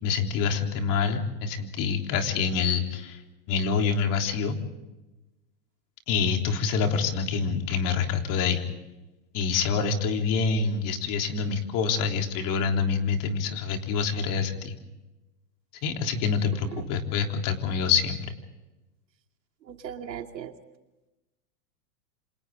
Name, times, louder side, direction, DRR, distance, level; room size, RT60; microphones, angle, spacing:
voice 1, 0.0-3.2 3.5-4.6 6.1-8.6 9.3-14.8 15.8-18.3, left 5 dB, 40° left, 4 dB, 3.6 m, -26 dB
voice 2, 19.6-20.5, right 9 dB, 90° right, 5 dB, 2.7 m, -38 dB
28.0 x 27.5 x 3.8 m, 1.0 s
hypercardioid pair, 135°, 49 cm